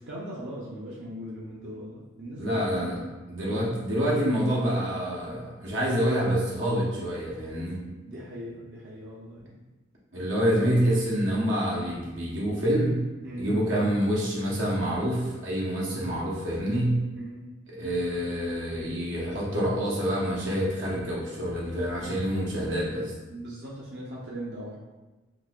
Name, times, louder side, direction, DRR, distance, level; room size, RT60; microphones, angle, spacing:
voice 1, 0.0-2.6 3.5-3.8 8.1-9.5 13.2-13.5 17.1-17.4 23.3-24.8, equal, 60° right, -6 dB, 0.5 m, -39 dB
voice 2, 2.4-3.0 3.3-7.8 10.1-13.0 13.4-17.0 17.7-23.1, equal, 90° right, -5 dB, 1.0 m, -27 dB
3.9 x 2.7 x 2.3 m, 1.1 s
head